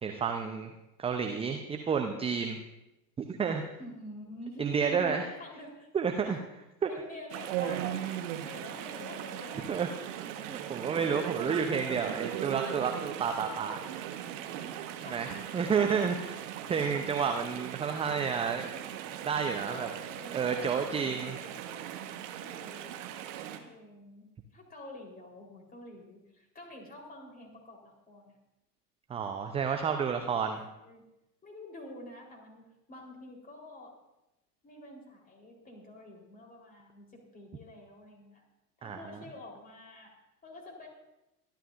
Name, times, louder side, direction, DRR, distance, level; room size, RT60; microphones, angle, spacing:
voice 1, 0.0-0.7 1.0-2.6 3.2-3.6 4.6-5.2 5.9-6.4 6.8-6.9 9.7-9.9 10.5-14.1 15.1-18.7 19.2-19.9 20.3-21.4 29.1-30.6 38.8-39.2, right 6 dB, 10° right, 5 dB, 0.7 m, -30 dB
voice 2, 3.8-5.9 6.2-6.4 6.9-9.8 14.5-15.6 19.6-21.9 22.4-23.0 23.5-28.3 30.8-31.0 31.4-33.9 34.6-38.4 38.8-40.9, left 1 dB, 20° left, 0 dB, 4.0 m, -48 dB
Chatter / Stream, 7.3-23.6, right 11 dB, 50° right, 1.5 m, -39 dB
24.5 x 11.5 x 2.6 m, 0.95 s
figure-of-eight pair, 85°, 48 cm